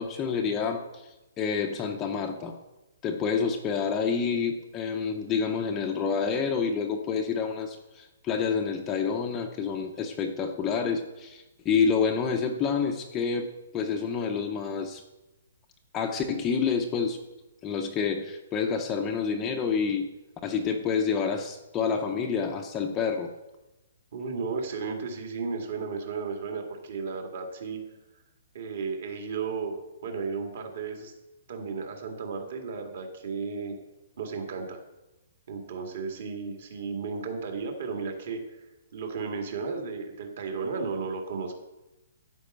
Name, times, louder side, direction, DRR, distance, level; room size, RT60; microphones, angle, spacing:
voice 1, 0.0-2.5 3.0-15.0 15.9-17.2 17.6-20.1 20.4-23.3, left 6 dB, 10° left, 2 dB, 0.6 m, -28 dB
voice 2, 24.1-27.8 28.5-31.1 31.5-33.8 34.2-34.8 35.5-38.7 38.9-41.5, right 4 dB, 45° right, 3 dB, 2.0 m, -34 dB
14.0 x 5.4 x 7.9 m, 0.99 s
hypercardioid pair, 180°, 0 cm